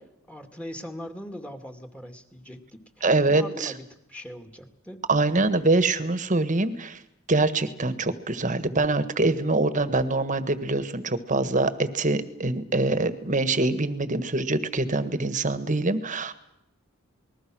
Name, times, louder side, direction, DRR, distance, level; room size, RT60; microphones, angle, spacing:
voice 1, 0.3-5.0, equal, 5° left, 6 dB, 2.3 m, -41 dB
voice 2, 3.0-3.7 5.1-7.0 7.3-16.3, right 2 dB, 40° right, 12 dB, 1.6 m, -24 dB
27.5 x 21.0 x 6.3 m, 0.81 s
head